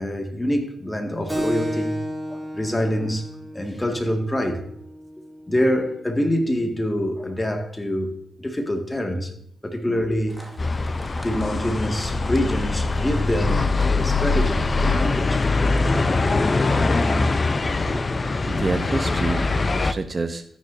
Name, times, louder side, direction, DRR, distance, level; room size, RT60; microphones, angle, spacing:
voice 1, 0.0-2.0 2.3-3.3 3.5-4.6 5.5-9.3 9.6-10.4 11.2-15.7 16.2-16.4, equal, 20° left, 2.1 m, -25 dB
Keyboard (musical), 1.3-6.4, equal, 20° right, 3.6 m, -33 dB
sound 1, 10.3-15.3, equal, ahead, 2.4 m, -45 dB
sound 2, 10.6-19.9, left 3 dB, 40° left, 0.7 m, -22 dB
voice 2, 18.5-20.4, right 3 dB, 40° right, 0.9 m, -28 dB
13.5 x 9.9 x 2.8 m
supercardioid pair, 45°, 0 cm